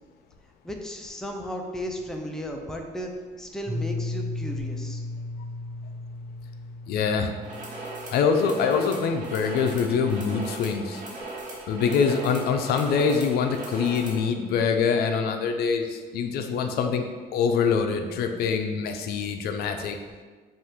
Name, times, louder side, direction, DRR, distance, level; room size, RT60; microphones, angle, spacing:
voice 1, 0.6-3.1 3.4-5.0, equal, 5° left, 2 dB, 0.4 m, -35 dB
Piano, 3.7-9.3, left 2 dB, 15° right, 0.9 m, -35 dB
voice 2, 6.9-7.3 8.1-11.0 11.7-17.1 17.3-20.0, left 6 dB, 70° left, 6 dB, 0.4 m, -24 dB
sound 1, 7.4-14.3, right 2 dB, 50° right, 1.2 m, -38 dB
5.3 x 2.4 x 3.6 m, 1.4 s
cardioid pair, 110°, 17 cm